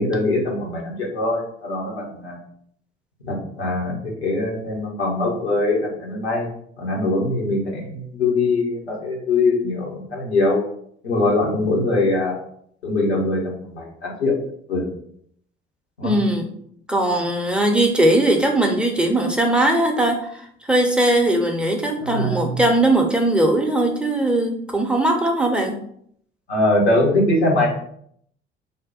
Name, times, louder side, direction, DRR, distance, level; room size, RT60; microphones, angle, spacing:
voice 1, 0.0-2.4 3.2-6.5 6.8-10.6 11.0-12.4 12.8-14.4 14.7-14.8 16.0-16.1 22.0-22.6 26.5-27.7, left 2 dB, 80° left, -2 dB, 0.9 m, -22 dB
voice 2, 16.0-16.5 16.9-20.2 20.7-25.8, right 1 dB, 5° right, 2 dB, 0.6 m, -19 dB
3.5 x 2.2 x 4.0 m, 0.67 s
figure-of-eight pair, 55°, 32 cm